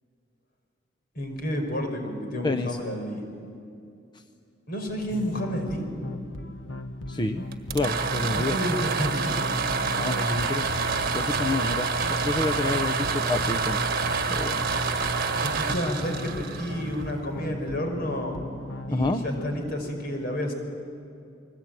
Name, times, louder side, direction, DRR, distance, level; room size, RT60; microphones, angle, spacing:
voice 1, 1.2-3.3 4.7-5.9 8.4-9.4 15.4-18.4 18.9-20.5, equal, 55° left, 4 dB, 5.1 m, -30 dB
voice 2, 2.4-2.8 7.1-7.4 7.7-8.6 10.0-10.7 11.1-11.9 12.2-13.8 14.3-14.7 18.9-19.2, left 2 dB, 25° left, 8 dB, 0.7 m, -28 dB
sound 1, 5.1-19.7, left 2 dB, 85° left, 1.2 m, -38 dB
sound 2, 7.5-17.3, right 4 dB, 50° right, 1.7 m, -27 dB
29.5 x 20.5 x 9.1 m, 2.5 s
head